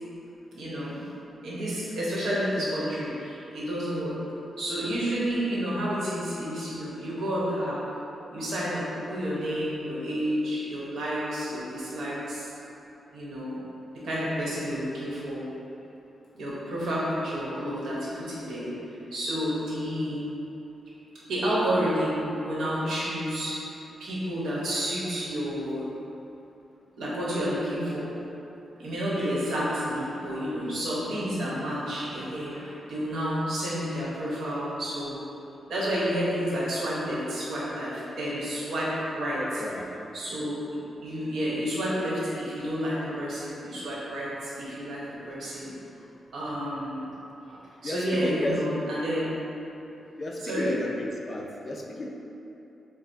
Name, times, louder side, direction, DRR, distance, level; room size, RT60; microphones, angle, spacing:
voice 1, 0.5-1.1 1.4-4.2 4.6-7.8 8.3-12.5 13.1-13.6 13.9-15.5 16.3-18.7 19.1-20.2 21.3-23.6 24.0-25.9 27.0-28.1 28.8-35.2 35.7-39.6 40.1-45.7 46.3-47.1 47.5-49.3 50.4-50.8, equal, 75° right, -7 dB, 1.0 m, -30 dB
voice 2, 39.3-39.9 40.3-40.4 47.8-48.6 50.2-52.1, left 2 dB, 30° left, -1 dB, 0.3 m, -33 dB
6.1 x 2.1 x 2.6 m, 2.9 s
wide cardioid pair, 145°, 0 cm